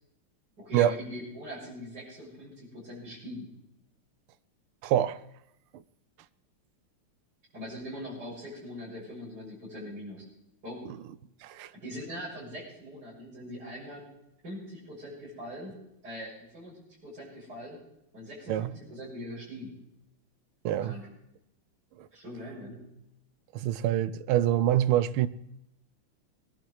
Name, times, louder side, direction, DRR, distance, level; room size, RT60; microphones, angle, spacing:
voice 1, 0.6-3.5 7.5-10.2 10.6-10.9 11.8-14.1 14.4-15.7 16.0-17.8 18.1-19.7 20.8-21.1 22.1-22.9, equal, 45° right, 7.4 m, -42 dB
voice 2, 4.8-5.2 10.9-11.0 11.4-11.7 18.5-18.7 20.6-21.0 22.0-22.1 23.5-25.3, right 12 dB, 80° right, 1.5 m, -25 dB
21.5 x 11.5 x 4.7 m
omnidirectional pair, 2.4 m